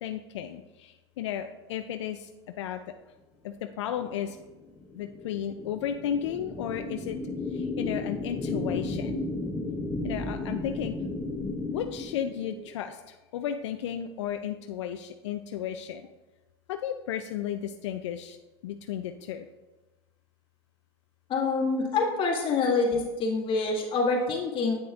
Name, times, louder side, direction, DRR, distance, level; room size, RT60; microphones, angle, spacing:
voice 1, 0.0-2.8 3.4-4.4 4.9-7.2 7.5-9.2 10.0-10.9 11.7-16.1 16.7-18.4 18.6-19.5, left 9 dB, 85° left, 7 dB, 0.4 m, -34 dB
sound 1, 4.0-12.7, left 2 dB, 10° left, 0.6 m, -34 dB
voice 2, 21.3-24.8, left 4 dB, 35° left, -2 dB, 1.7 m, -26 dB
8.4 x 6.1 x 2.4 m, 1.1 s
supercardioid pair, 110°, 15 cm